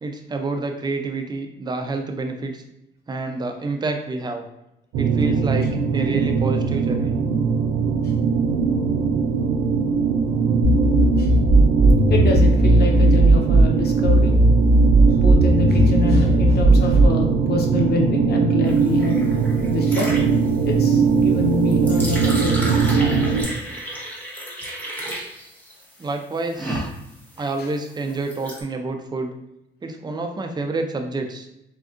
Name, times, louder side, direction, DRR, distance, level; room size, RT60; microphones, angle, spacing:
voice 1, 0.0-2.6 3.1-4.4 5.0-7.2 26.0-26.9 27.4-29.3 29.8-31.5, right 3 dB, 20° right, 4 dB, 0.4 m, -28 dB
sound 1, 4.9-23.4, right 5 dB, 85° right, 0.4 m, -20 dB
sound 2, 10.6-13.6 14.0-17.1, right 1 dB, 75° left, 0.8 m, -16 dB
voice 2, 12.1-14.4 15.1-19.2 19.7-20.2 20.6-23.0, left 3 dB, 55° left, 2 dB, 0.7 m, -26 dB
sound 3, 18.7-28.6, right 1 dB, 10° left, 0.8 m, -33 dB
3.6 x 2.2 x 2.5 m, 0.84 s
cardioid pair, 90°, 20 cm